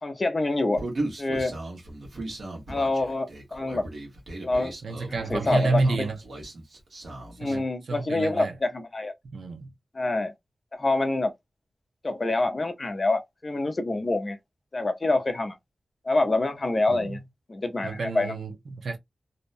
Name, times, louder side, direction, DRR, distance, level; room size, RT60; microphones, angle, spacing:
voice 1, 0.0-0.8 1.2-1.6 2.7-3.9 4.4-4.7 5.1-6.1 7.4-9.1 9.9-10.3 10.7-11.3 12.0-14.4 14.7-15.6 16.0-17.2 17.5-18.3, left 2 dB, 35° left, 0.5 m, -26 dB
Human voice, 0.8-7.6, right 2 dB, 65° right, 1.1 m, -37 dB
voice 2, 4.8-6.2 7.4-8.6 9.3-9.7 16.9-17.2 17.8-19.0, right 3 dB, 80° right, 0.4 m, -29 dB
2.7 x 2.1 x 2.5 m
wide cardioid pair, 95°, 0 cm